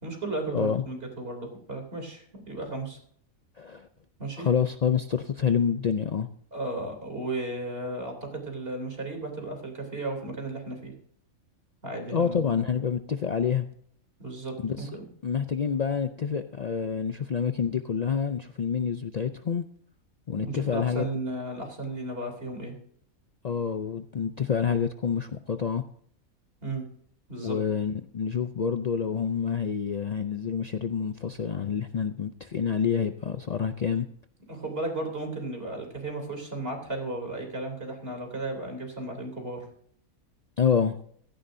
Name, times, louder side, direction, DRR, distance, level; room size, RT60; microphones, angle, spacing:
voice 1, 0.0-3.0 4.2-4.5 6.5-10.9 11.8-12.6 14.2-15.1 20.4-22.8 26.6-26.8 27.3-27.6 34.5-39.6, right 2 dB, 40° right, 3 dB, 3.5 m, -34 dB
voice 2, 0.5-0.8 3.6-3.9 4.4-6.3 12.1-13.7 14.6-14.9 15.2-19.7 20.3-21.0 23.4-25.8 27.4-34.1 40.6-41.0, left 7 dB, 80° left, 8 dB, 0.3 m, -27 dB
16.0 x 14.0 x 2.7 m, 0.64 s
omnidirectional pair, 1.5 m